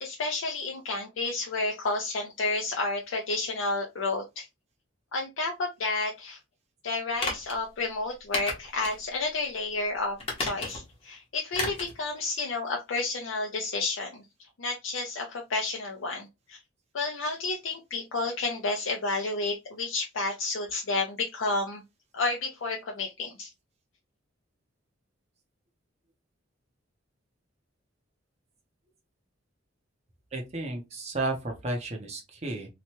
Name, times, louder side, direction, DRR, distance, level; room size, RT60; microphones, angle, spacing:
voice 1, 0.0-4.5 5.1-6.4 6.8-16.6 16.9-21.8 22.1-23.5, left 3 dB, 75° left, 0.5 m, -31 dB
sound 1, 7.2-7.6 8.3-9.0 9.4-9.5 10.2-10.9 11.5-12.0 12.3-12.4, left 2 dB, 30° left, 0.9 m, -33 dB
voice 2, 30.3-32.7, right 2 dB, 30° right, 0.6 m, -33 dB
2.8 x 2.2 x 2.9 m
head